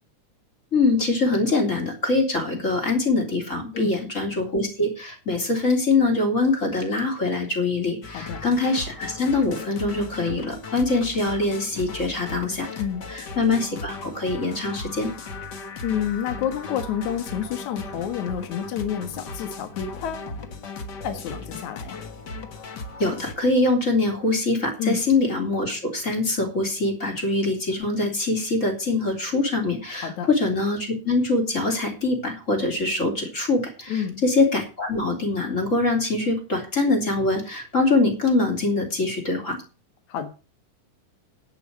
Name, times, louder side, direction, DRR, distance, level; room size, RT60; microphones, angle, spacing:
voice 1, 0.7-12.7 13.1-15.1 23.0-39.6, left 3 dB, 25° left, 3.5 m, -23 dB
sound 1, 8.0-23.3, left 3 dB, 45° left, 1.4 m, -37 dB
voice 2, 12.8-13.1 15.8-20.3 21.0-22.0 24.8-25.0 30.0-30.3 33.9-34.2 40.1-40.3, left 9 dB, 65° left, 2.8 m, -29 dB
10.5 x 8.7 x 6.5 m
omnidirectional pair, 3.7 m